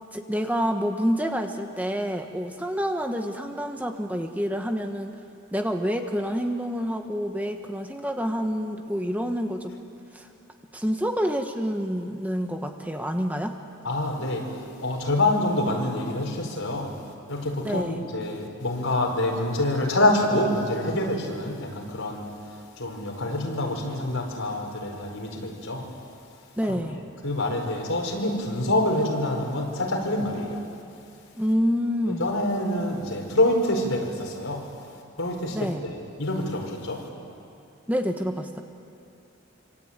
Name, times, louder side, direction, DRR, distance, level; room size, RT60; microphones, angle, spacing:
voice 1, 0.1-5.2 5.5-9.7 10.1-10.3 10.7-13.6 17.6-18.0 26.6-27.0 31.4-32.3 35.5-35.8 37.9-38.6, equal, 5° right, 4 dB, 1.2 m, -27 dB
voice 2, 13.8-17.0 17.3-25.9 27.2-30.6 32.2-34.7 35.2-37.1, left 1 dB, 80° left, 1 dB, 5.1 m, -26 dB
26.0 x 25.5 x 9.0 m, 2.5 s
head